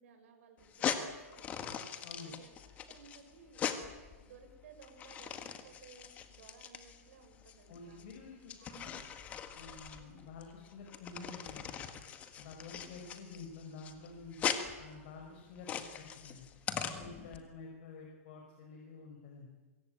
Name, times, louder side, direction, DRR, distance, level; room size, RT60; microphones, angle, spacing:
voice 1, 0.0-2.5 2.9-3.7 4.2-5.4 5.6-8.0 8.6-8.9 9.9-10.2 12.6-13.0 17.2-17.4, right 6 dB, 55° right, 5 dB, 7.0 m, -59 dB
sound 1, 0.6-17.4, left 8 dB, 15° left, 1.7 m, -41 dB
voice 2, 2.0-2.3 7.7-8.9 9.5-11.8 12.4-14.4 14.8-15.7 16.0-16.5 16.8-19.5, left 4 dB, 45° left, 1 dB, 5.0 m, -50 dB
24.5 x 22.5 x 9.1 m, 1.3 s
supercardioid pair, 170°, 8 cm